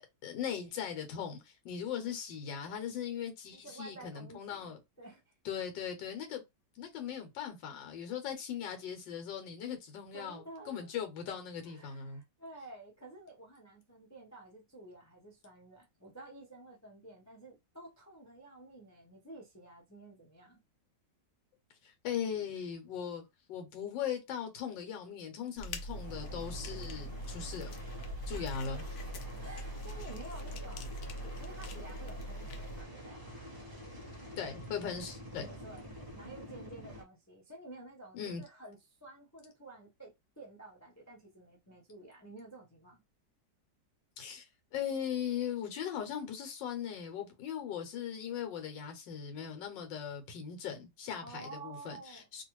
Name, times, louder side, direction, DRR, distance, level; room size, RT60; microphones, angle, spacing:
voice 1, 0.2-4.8 5.4-6.4 6.8-12.2 21.8-23.2 23.5-27.8 28.3-28.8 34.4-35.5 38.1-38.4 44.2-52.4, left 8 dB, 85° left, 1.5 m, -39 dB
voice 2, 3.6-5.4 10.1-10.9 11.6-20.6 28.3-28.8 29.4-30.9 31.2-33.2 34.8-34.9 35.4-35.8 36.1-43.0 51.1-52.3, right 2 dB, 25° left, 0.4 m, -51 dB
sound 1, 25.6-32.8, equal, 70° left, 0.8 m, -42 dB
sound 2, 25.9-37.0, equal, 15° right, 0.8 m, -47 dB
3.0 x 2.4 x 3.0 m
omnidirectional pair, 1.9 m